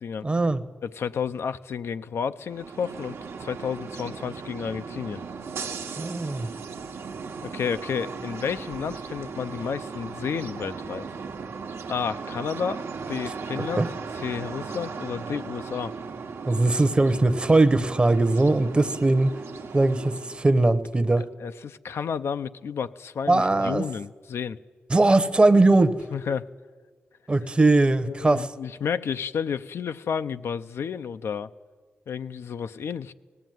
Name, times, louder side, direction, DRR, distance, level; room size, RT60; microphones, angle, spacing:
voice 1, 0.2-0.6 6.0-6.5 13.8-13.9 16.5-19.4 19.7-21.3 23.3-23.9 24.9-26.0 27.3-28.5, right 2 dB, 25° right, 12 dB, 0.9 m, -20 dB
voice 2, 0.8-5.2 7.4-11.1 11.9-13.9 14.1-15.9 21.2-24.6 26.1-26.5 28.0-31.5 32.1-33.1, left 7 dB, 80° left, 11 dB, 0.6 m, -31 dB
sound 1, 2.4-20.5, right 5 dB, 80° right, 1.1 m, -37 dB
19.0 x 14.5 x 9.2 m, 1.5 s
wide cardioid pair, 120°, 4 cm